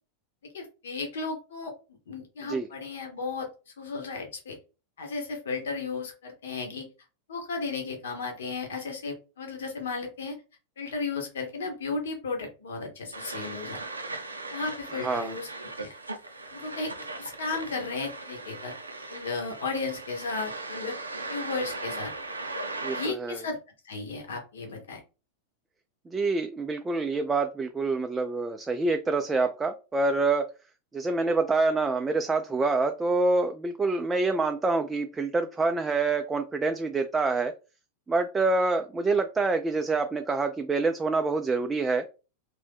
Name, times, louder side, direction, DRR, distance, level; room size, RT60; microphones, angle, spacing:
voice 1, 0.5-1.7 2.1-3.5 3.8-4.6 5.0-6.9 7.3-10.3 10.8-13.8 14.5-15.5 15.8-16.0 16.5-16.9 17.2-18.7 19.1-20.9 21.3-22.1 22.5-23.6 23.8-25.0, left 4 dB, 60° left, 3 dB, 0.9 m, -34 dB
sound 1, 13.1-23.1, right 3 dB, 80° right, 0.5 m, -38 dB
voice 2, 15.0-15.3 22.8-23.4 26.1-30.5 30.9-37.5 38.1-42.0, right 3 dB, 15° right, 6 dB, 0.3 m, -26 dB
3.0 x 2.6 x 3.3 m, 0.31 s
figure-of-eight pair, 90°, 0 cm